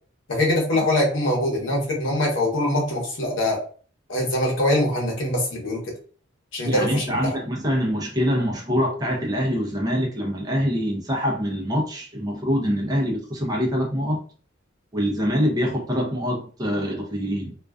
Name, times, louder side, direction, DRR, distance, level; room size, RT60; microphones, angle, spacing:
voice 1, 0.3-3.6 4.1-5.9 6.5-7.3, left 1 dB, 70° left, 0.9 m, -23 dB
voice 2, 6.6-14.2 14.9-17.6, equal, 20° right, 0.5 m, -24 dB
2.4 x 2.2 x 2.3 m
head